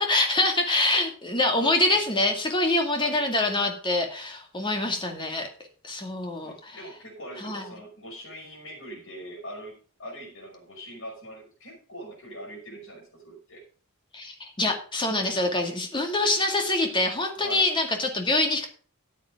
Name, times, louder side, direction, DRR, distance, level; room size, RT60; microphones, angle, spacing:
voice 1, 0.0-5.5 5.8-6.8 7.4-7.7 14.1-18.7, left 2 dB, 20° left, 3 dB, 2.2 m, -25 dB
voice 2, 6.3-13.6 17.4-17.7, equal, 65° left, 1 dB, 5.3 m, -42 dB
13.5 x 8.5 x 3.7 m, 0.39 s
head